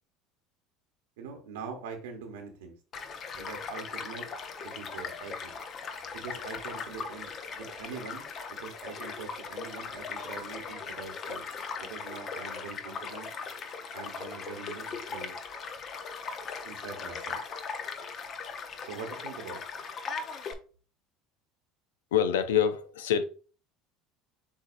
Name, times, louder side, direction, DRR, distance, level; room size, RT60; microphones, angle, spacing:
voice 1, 1.2-2.8 3.4-4.3 4.6-5.6 6.1-11.5 11.8-13.3 13.9-15.4 16.6-17.4 18.8-19.6, right 5 dB, 85° right, 1.0 m, -43 dB
Child speech kid speaking / Stream / Car passing by, 2.9-20.5, left 5 dB, 45° left, 0.7 m, -39 dB
voice 2, 22.1-23.2, left 9 dB, 90° left, 0.5 m, -25 dB
7.1 x 2.8 x 2.5 m
supercardioid pair, 90°, 0 cm